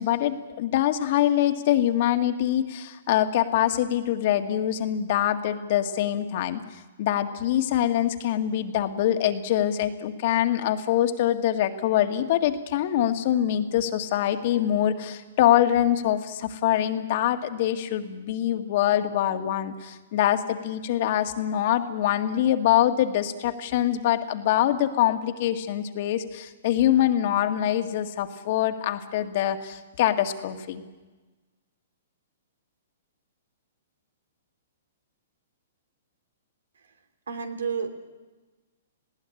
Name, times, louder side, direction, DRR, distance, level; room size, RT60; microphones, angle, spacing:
voice 1, 0.0-30.8, left 11 dB, 50° left, 7 dB, 1.9 m, -24 dB
voice 2, 37.3-37.9, right 6 dB, 85° right, 6 dB, 3.0 m, -30 dB
20.0 x 16.5 x 9.8 m, 1.2 s
hypercardioid pair, 135°, 0 cm